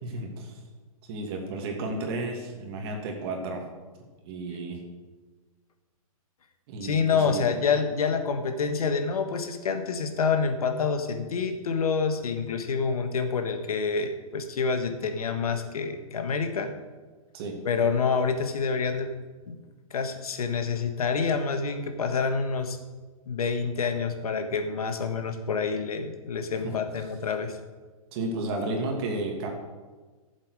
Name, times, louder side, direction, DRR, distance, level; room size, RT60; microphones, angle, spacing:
voice 1, 0.0-0.6 1.1-3.6 4.2-4.8 6.7-7.4 17.3-17.6 28.1-29.5, right 2 dB, 45° right, 2 dB, 2.5 m, -32 dB
voice 2, 6.8-16.7 17.6-19.1 19.5-19.6 19.9-22.8 23.3-27.6, left 5 dB, 80° left, 7 dB, 1.5 m, -27 dB
14.0 x 7.5 x 4.9 m, 1.3 s
hypercardioid pair, 145°, 19 cm